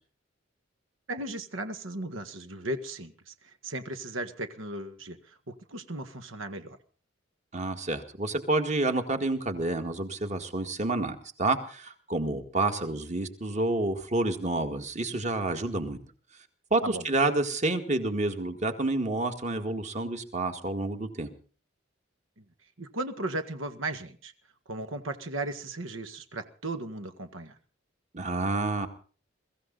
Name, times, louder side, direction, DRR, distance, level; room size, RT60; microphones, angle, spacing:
voice 1, 1.1-6.8 16.8-17.0 22.8-24.3 24.7-27.5, right 2 dB, 85° right, 9 dB, 1.8 m, -36 dB
voice 2, 7.5-16.0 16.7-21.3 28.1-28.9, right 2 dB, 35° right, 7 dB, 2.0 m, -29 dB
23.0 x 15.0 x 4.1 m, 0.40 s
head